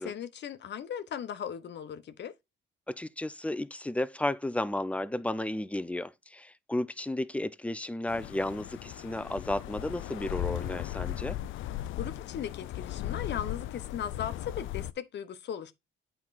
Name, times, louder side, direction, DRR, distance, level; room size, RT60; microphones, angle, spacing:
voice 1, 0.0-2.3 12.0-15.7, left 8 dB, 60° left, 1.0 m, -38 dB
voice 2, 2.9-11.4, left 1 dB, 5° left, 0.6 m, -33 dB
sound 1, 8.1-14.9, left 13 dB, 80° left, 0.5 m, -37 dB
8.4 x 4.5 x 4.1 m
cardioid pair, 90°, 20 cm